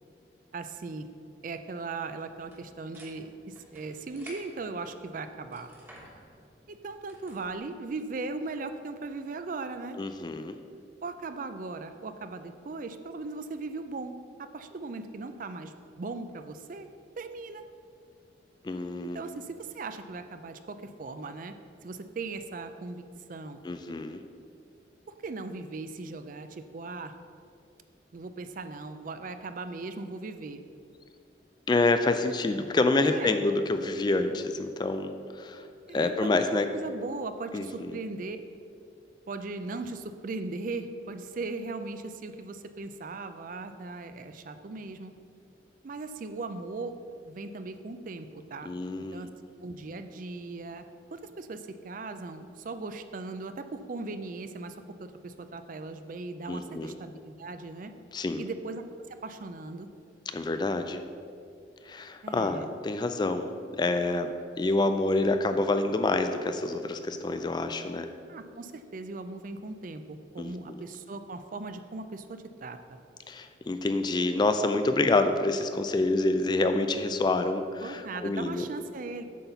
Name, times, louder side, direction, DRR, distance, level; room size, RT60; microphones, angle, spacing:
voice 1, 0.5-1.1 1.4-5.7 6.7-10.0 11.0-16.9 17.2-17.6 19.0-21.6 21.8-23.0 23.3-23.6 25.2-27.1 28.1-30.6 33.0-33.4 35.9-38.4 39.3-45.1 45.8-47.0 47.2-48.7 49.0-49.3 49.6-50.8 51.1-57.9 58.4-58.8 59.1-59.9 62.2-62.7 68.3-73.0 77.8-79.2, right 3 dB, 45° right, 9 dB, 0.4 m, -38 dB
sound 1, 2.4-7.6, equal, 10° right, 1.3 m, -53 dB
voice 2, 10.0-10.6 18.6-19.2 23.6-24.2 31.7-35.7 35.9-36.7 37.5-38.0 48.7-49.3 56.5-56.9 58.1-58.5 60.3-61.0 61.8-63.5 63.8-68.1 70.4-70.8 73.3-78.6, left 2 dB, 25° left, 8 dB, 0.3 m, -27 dB
8.3 x 4.0 x 6.8 m, 2.4 s
head